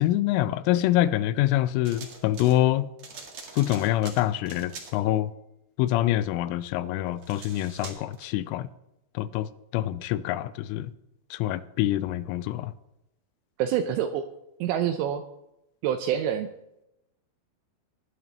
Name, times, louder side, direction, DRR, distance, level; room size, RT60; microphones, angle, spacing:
voice 1, 0.0-2.9 3.6-5.3 5.8-8.7 9.2-10.9 11.3-12.7, left 14 dB, 90° left, 3.2 m, -25 dB
sound 1, 1.8-2.6 3.0-5.0 7.1-8.3, right 4 dB, 55° right, 2.0 m, -43 dB
voice 2, 13.6-14.3 14.6-15.2 15.8-16.5, right 9 dB, 85° right, 2.5 m, -26 dB
19.0 x 11.0 x 2.9 m
omnidirectional pair, 5.6 m